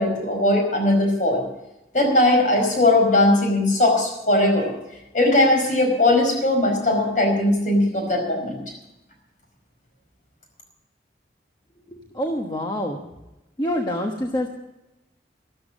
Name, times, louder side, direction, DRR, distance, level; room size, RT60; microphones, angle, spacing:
voice 1, 0.0-1.4 1.9-4.7 5.1-8.6, left 1 dB, 45° left, 2 dB, 5.0 m, -19 dB
voice 2, 11.9-13.1 13.6-14.5, left 1 dB, 25° left, 2 dB, 1.2 m, -26 dB
13.0 x 13.0 x 6.2 m, 0.95 s
head